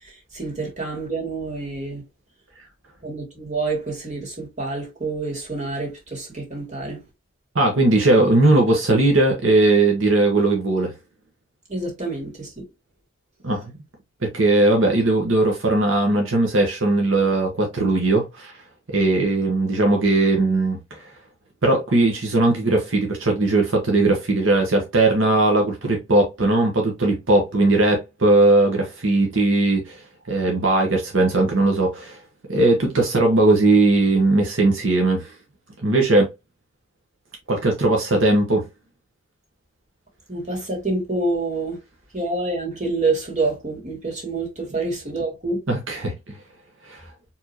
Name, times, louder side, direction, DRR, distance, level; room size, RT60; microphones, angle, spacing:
voice 1, 0.0-2.0 3.0-7.0 11.7-12.6 40.3-41.8 42.1-45.6, right 3 dB, 40° right, 2.6 m, -27 dB
voice 2, 7.5-10.9 13.4-13.7 14.2-18.5 18.9-21.0 21.6-30.0 30.3-32.2 32.5-35.3 35.8-36.3 37.5-38.6 45.7-46.3 46.9-47.0, right 2 dB, 80° right, 1.3 m, -19 dB
4.7 x 3.7 x 2.9 m
head